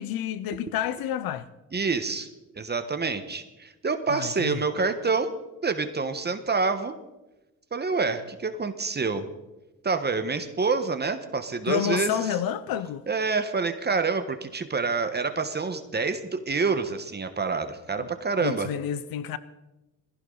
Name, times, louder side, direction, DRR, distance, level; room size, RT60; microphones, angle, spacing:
voice 1, 0.0-1.5 4.1-4.6 11.7-13.0 18.0-18.1 18.4-19.4, left 10 dB, 85° left, 0.8 m, -29 dB
voice 2, 1.7-2.3 2.6-5.3 5.6-6.9 7.7-9.3 9.8-12.2 13.1-18.7, right 4 dB, 30° right, 1.2 m, -27 dB
21.0 x 15.5 x 3.9 m
cardioid pair, 105°, 34 cm